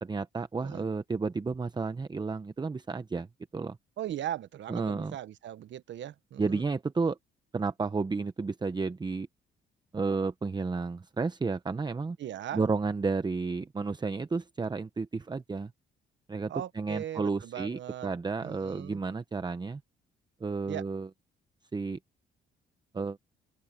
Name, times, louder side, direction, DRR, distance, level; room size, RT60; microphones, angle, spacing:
voice 1, 0.0-3.3 3.5-3.8 4.7-5.1 6.4-7.2 7.5-9.3 9.9-12.2 12.5-15.7 16.3-19.8 20.4-21.1 21.7-22.0 22.9-23.2, right 4 dB, 20° right, 0.8 m, -32 dB
voice 2, 4.0-6.6 12.2-12.7 16.5-18.1 18.4-19.0 20.7-20.8, right 11 dB, 70° right, 1.1 m, -38 dB
open air
cardioid pair, 90°, 20 cm